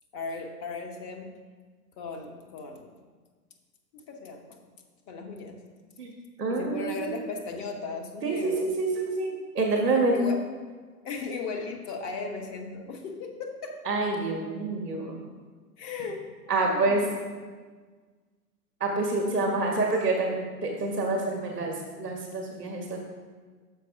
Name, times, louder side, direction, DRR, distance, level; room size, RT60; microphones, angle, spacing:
voice 1, 0.1-1.4 2.0-2.9 3.9-4.6 5.1-5.6 6.5-8.7 9.7-10.4 11.0-13.8 15.8-17.6, left 4 dB, 25° left, 3 dB, 0.7 m, -37 dB
voice 2, 6.4-7.2 8.2-10.2 13.8-15.2 16.5-17.0 18.8-23.0, right 3 dB, 10° right, -17 dB, 0.3 m, -27 dB
6.7 x 5.2 x 5.0 m, 1.5 s
figure-of-eight pair, 110°, 47 cm